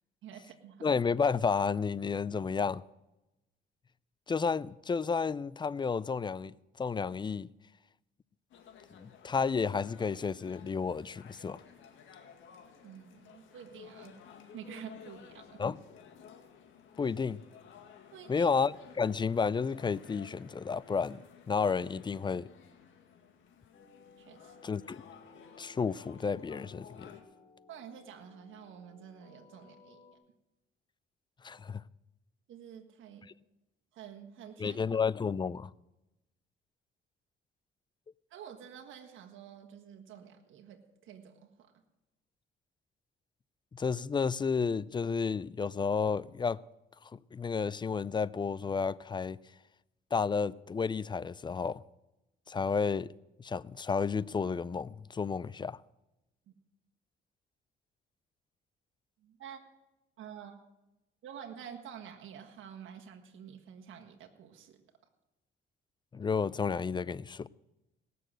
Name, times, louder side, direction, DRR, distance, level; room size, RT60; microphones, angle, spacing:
voice 1, 0.2-0.9 12.8-14.1 14.5-15.6 18.1-18.5 24.2-24.6 27.7-30.0 32.5-33.3 33.9-34.8 38.3-41.7 56.5-56.6 59.2-59.6 60.2-60.6 61.2-64.8, right 8 dB, 80° right, 1.6 m, -49 dB
voice 2, 0.8-2.8 4.3-7.5 8.9-11.6 15.6-15.8 17.0-17.4 18.3-21.2 21.5-22.5 24.6-25.0 25.6-27.2 31.4-31.8 34.6-35.7 43.7-46.6 47.1-49.4 50.1-51.8 52.5-53.1 53.4-55.8 66.1-67.5, left 5 dB, 25° left, 0.4 m, -31 dB
sound 1, 8.5-27.2, left 7 dB, 80° left, 1.9 m, -55 dB
sound 2, 23.7-30.1, left 4 dB, 50° left, 2.8 m, -59 dB
18.0 x 6.8 x 7.7 m
cardioid pair, 90°, 20 cm